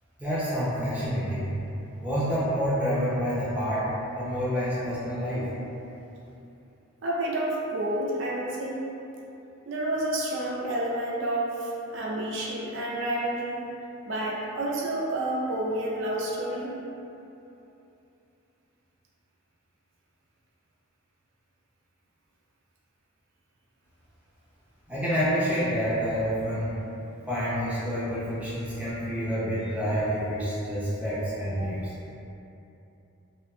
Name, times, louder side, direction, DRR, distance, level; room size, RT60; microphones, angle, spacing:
voice 1, 0.2-1.5 2.0-3.8 4.1-5.5 24.9-26.7 27.3-31.9, equal, 5° right, -11 dB, 0.6 m, -28 dB
voice 2, 7.0-8.8 9.7-13.6 14.1-16.7 31.6-31.7, right 1 dB, 60° right, -4 dB, 0.4 m, -29 dB
2.8 x 2.2 x 2.3 m, 2.8 s
head